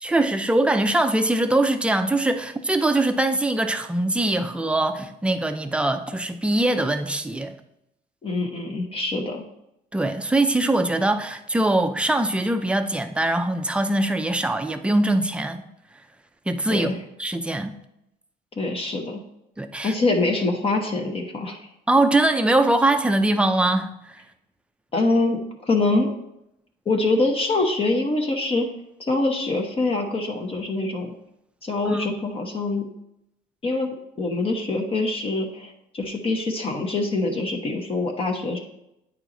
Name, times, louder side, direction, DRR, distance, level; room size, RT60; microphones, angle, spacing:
voice 1, 0.0-7.5 9.9-15.6 16.5-16.9 17.2-17.7 19.6-19.9 21.9-24.2 31.8-32.1, right 2 dB, 5° right, 0.6 m, -22 dB
voice 2, 8.2-9.4 16.7-17.0 18.6-19.2 19.8-21.7 24.9-26.1 26.9-28.7 29.0-31.1 31.6-32.9 33.6-33.9 34.2-38.6, left 2 dB, 35° left, 1.0 m, -24 dB
9.1 x 4.6 x 3.9 m
cardioid pair, 110°, 17 cm